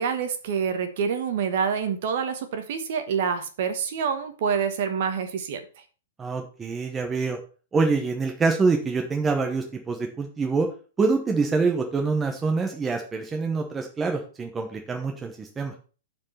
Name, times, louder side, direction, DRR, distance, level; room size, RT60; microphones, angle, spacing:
voice 1, 0.0-5.6, right 6 dB, 40° right, 7 dB, 1.3 m, -27 dB
voice 2, 6.2-7.4 7.7-10.7 11.0-15.7, right 4 dB, 10° right, 3 dB, 0.9 m, -25 dB
9.5 x 4.7 x 5.6 m, 0.36 s
hypercardioid pair, 180°, 0 cm